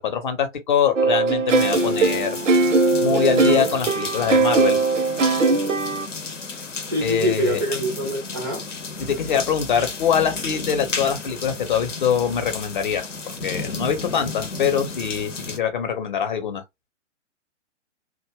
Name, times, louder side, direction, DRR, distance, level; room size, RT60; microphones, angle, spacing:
voice 1, 0.0-2.4 3.0-4.8 7.0-7.6 9.0-13.1 13.4-16.6, left 7 dB, 40° left, 0.7 m, -23 dB
sound 1, 1.0-6.1, right 3 dB, 80° right, 0.6 m, -20 dB
sound 2, 1.5-15.6, left 4 dB, 75° left, 0.8 m, -33 dB
voice 2, 6.8-8.6, equal, 20° right, 0.3 m, -25 dB
2.3 x 2.0 x 3.2 m
figure-of-eight pair, 120°, 38 cm